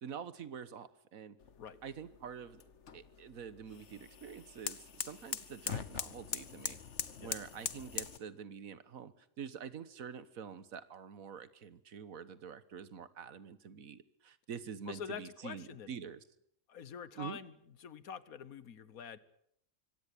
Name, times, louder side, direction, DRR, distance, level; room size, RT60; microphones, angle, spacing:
voice 1, 0.0-1.4 1.8-2.6 2.9-6.8 7.2-16.2 17.2-17.4, right 7 dB, 75° right, 15 dB, 1.6 m, -46 dB
sound 1, 1.4-8.2, left 7 dB, 55° left, 1.4 m, -43 dB
voice 2, 14.9-15.9 16.7-19.2, left 7 dB, 80° left, 16 dB, 1.6 m, -46 dB
24.5 x 17.5 x 8.5 m, 0.73 s
omnidirectional pair, 1.5 m